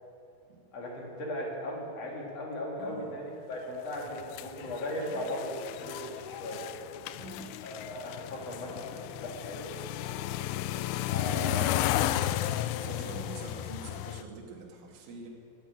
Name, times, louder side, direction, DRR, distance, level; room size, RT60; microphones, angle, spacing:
voice 1, 0.7-6.6 7.6-9.7 11.1-11.8 12.9-13.1, left 1 dB, 40° left, -2 dB, 3.1 m, -37 dB
voice 2, 2.8-3.2 5.1-5.2 7.1-7.5 10.4-10.6 11.2-12.1 12.8-15.3, right 4 dB, 75° right, -3 dB, 4.3 m, -45 dB
sound 1, 3.9-14.2, left 13 dB, 85° left, 3.0 m, -34 dB
13.5 x 9.3 x 9.8 m, 2.7 s
omnidirectional pair, 5.7 m